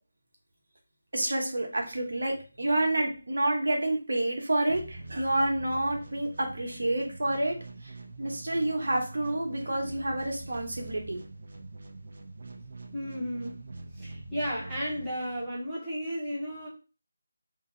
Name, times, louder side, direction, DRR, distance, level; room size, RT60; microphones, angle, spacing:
voice 1, 1.1-7.6 7.8-7.9 8.2-11.2, right 1 dB, 65° right, 1 dB, 1.0 m, -29 dB
sound 1, 4.7-15.6, right 2 dB, 40° right, 0.4 m, -44 dB
voice 2, 12.9-13.5 14.0-16.7, equal, ahead, -14 dB, 0.7 m, -33 dB
2.8 x 2.0 x 3.7 m, 0.32 s
figure-of-eight pair, 175°, 0 cm